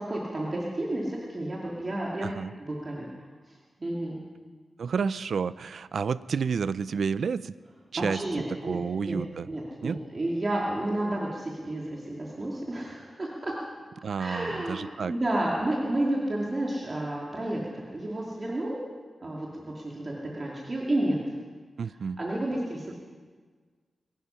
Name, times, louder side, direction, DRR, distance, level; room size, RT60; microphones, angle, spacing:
voice 1, 0.0-2.3 2.6-3.1 3.5-4.3 8.0-8.8 9.0-9.2 9.5-13.5 14.2-17.6 17.9-18.7 19.2-21.2 22.2-22.9, right 1 dB, 35° right, -4 dB, 2.4 m, -31 dB
voice 2, 4.8-7.6 7.9-8.2 8.6-9.5 9.8-10.0 14.0-15.1 21.8-22.2, right 6 dB, 70° right, 16 dB, 0.4 m, -30 dB
23.0 x 10.5 x 5.6 m, 1.5 s
wide cardioid pair, 110°, 0 cm